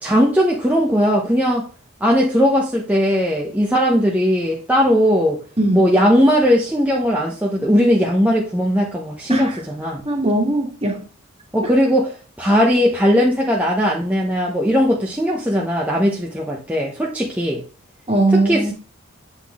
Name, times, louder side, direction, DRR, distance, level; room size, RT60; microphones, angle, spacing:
voice 1, 0.0-1.7 2.0-5.4 5.7-10.0 11.5-17.6 18.3-18.7, equal, 5° right, 0.9 m, -18 dB
voice 2, 10.1-11.0 18.1-18.7, right 2 dB, 30° right, 1.8 m, -19 dB
8.1 x 4.0 x 3.5 m
head